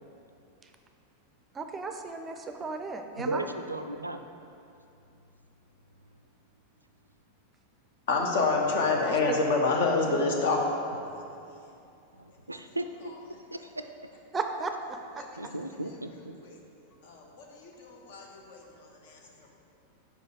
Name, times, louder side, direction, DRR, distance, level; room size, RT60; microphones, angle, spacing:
voice 1, 1.5-3.4 14.3-14.7, right 4 dB, 20° right, 6 dB, 0.5 m, -34 dB
voice 2, 3.2-4.2 12.5-13.1 13.5-13.9 15.4-16.4, right 1 dB, 85° right, 8 dB, 0.3 m, -35 dB
voice 3, 8.1-10.6 17.0-18.6, left 3 dB, 55° left, 1 dB, 1.0 m, -27 dB
5.3 x 5.1 x 6.5 m, 2.7 s
figure-of-eight pair, 90°, 0 cm